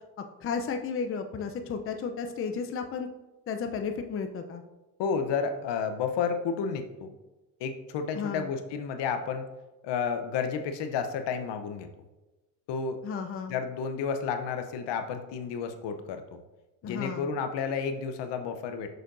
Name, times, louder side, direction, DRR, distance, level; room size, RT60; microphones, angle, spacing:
voice 1, 0.4-3.1 3.5-4.6 8.1-8.5 13.0-13.6 16.8-17.3, left 5 dB, 30° left, 6 dB, 0.6 m, -33 dB
voice 2, 5.0-7.1 7.6-9.5 9.8-11.9 12.7-13.0 13.5-16.4 16.8-18.9, left 6 dB, 65° left, 8 dB, 0.8 m, -31 dB
6.5 x 6.4 x 2.6 m, 1.1 s
supercardioid pair, 75°, 46 cm